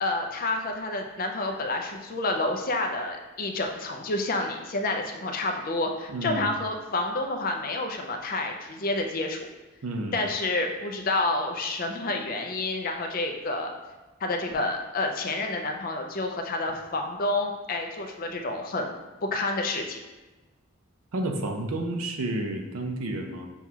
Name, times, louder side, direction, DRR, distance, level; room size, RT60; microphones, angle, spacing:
voice 1, 0.0-9.4 10.1-13.7 14.2-18.9 19.3-20.0, left 2 dB, 40° left, 3 dB, 0.5 m, -29 dB
voice 2, 6.1-6.5 9.8-10.2 21.1-23.5, right 1 dB, 80° right, 4 dB, 0.6 m, -30 dB
6.9 x 2.3 x 2.8 m, 1.1 s
head